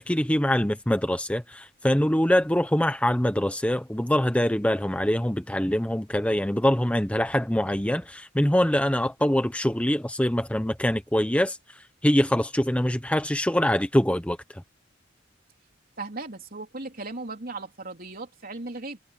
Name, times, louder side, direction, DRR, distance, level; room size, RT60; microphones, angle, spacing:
voice 1, 0.0-11.6 12.0-14.6, equal, 5° left, 1.1 m, -24 dB
voice 2, 16.0-19.0, right 3 dB, 50° right, 3.3 m, -37 dB
head